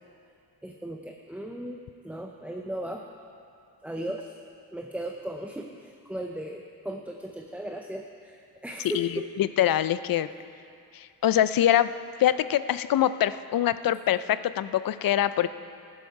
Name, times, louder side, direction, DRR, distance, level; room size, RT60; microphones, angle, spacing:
voice 1, 0.6-3.1 3.8-4.3 4.7-9.3, right 1 dB, 5° right, 2 dB, 0.5 m, -36 dB
voice 2, 9.4-10.3 10.9-11.9 12.2-15.5, left 11 dB, 60° left, 14 dB, 0.5 m, -24 dB
15.5 x 12.0 x 4.7 m, 2.5 s
wide cardioid pair, 140°, 40 cm